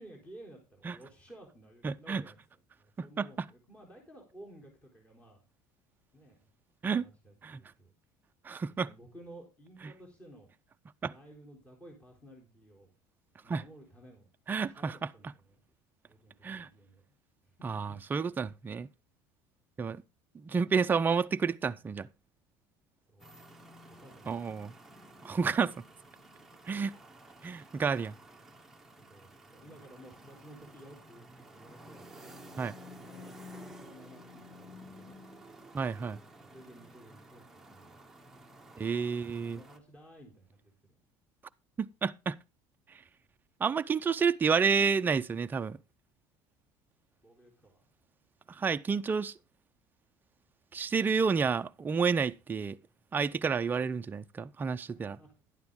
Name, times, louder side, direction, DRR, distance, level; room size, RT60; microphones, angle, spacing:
voice 1, 0.0-2.4 2.8-5.5 6.1-6.5 7.0-7.9 8.8-10.5 11.0-12.9 13.4-14.3 14.6-15.6 16.0-17.0 17.4-18.0 23.1-23.3 24.0-24.4 25.2-25.5 29.0-32.1 32.8-35.2 36.0-38.0 39.3-41.0 47.2-47.8 54.8-55.3, right 1 dB, 15° left, 3.7 m, -54 dB
voice 2, 1.8-2.2 3.0-3.5 6.8-7.1 7.4-7.6 8.4-8.9 11.0-11.1 13.5-13.6 14.5-15.0 16.4-16.7 17.6-18.9 19.8-20.0 20.3-22.1 24.3-24.7 25.2-25.8 26.7-27.0 27.4-28.2 32.6-32.7 35.7-36.2 38.8-39.6 41.8-42.4 43.6-45.8 48.5-49.3 50.7-52.8 53.1-55.2, right 5 dB, 20° right, 0.5 m, -30 dB
sound 1, 23.2-39.8, equal, 5° right, 1.2 m, -52 dB
11.5 x 9.4 x 3.7 m
cardioid pair, 125°, 9 cm